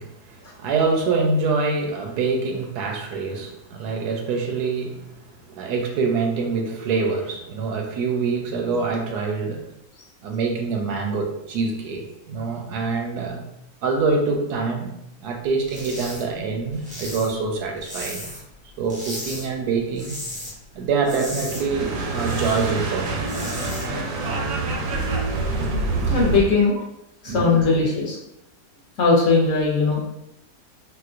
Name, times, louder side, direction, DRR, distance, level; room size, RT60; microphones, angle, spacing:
voice 1, 0.0-5.0 5.5-9.7 10.2-13.4 13.8-14.9 15.2-18.2 18.8-20.2 20.7-23.3 26.6-26.7 27.3-27.6, right 4 dB, 85° right, 3 dB, 1.2 m, -25 dB
sound 1, 15.6-16.2 16.5-18.5 18.9-19.5 19.8-20.5 20.8-22.7 23.1-23.9, left 1 dB, 10° right, 0.4 m, -35 dB
sound 2, 21.3-26.5, right 3 dB, 70° right, 0.9 m, -26 dB
voice 2, 26.1-26.7 27.2-28.2 29.0-30.0, left 4 dB, 60° left, -3 dB, 1.0 m, -19 dB
4.3 x 2.1 x 2.4 m, 0.81 s
omnidirectional pair, 1.7 m